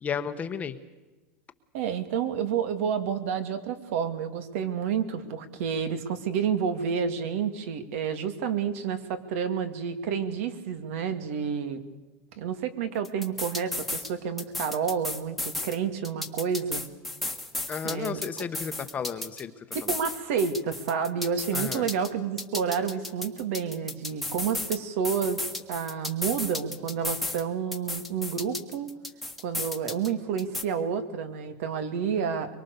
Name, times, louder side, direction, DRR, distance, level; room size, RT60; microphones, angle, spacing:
voice 1, 0.0-0.8 17.7-19.5 19.8-19.9 21.5-21.8, left 7 dB, 20° left, 10 dB, 1.1 m, -33 dB
voice 2, 1.7-11.8 12.4-16.9 17.8-18.5 19.7-25.4 25.7-28.9 29.4-32.6, right 7 dB, 70° right, 9 dB, 2.7 m, -29 dB
sound 1, 13.0-14.1 14.4-15.8 16.0-19.4 19.7-22.1 22.4-24.8 25.0-27.4 27.7-30.1 30.4-30.6, left 2 dB, ahead, 1.5 m, -34 dB
23.5 x 23.5 x 6.9 m, 1.2 s
supercardioid pair, 155°, 8 cm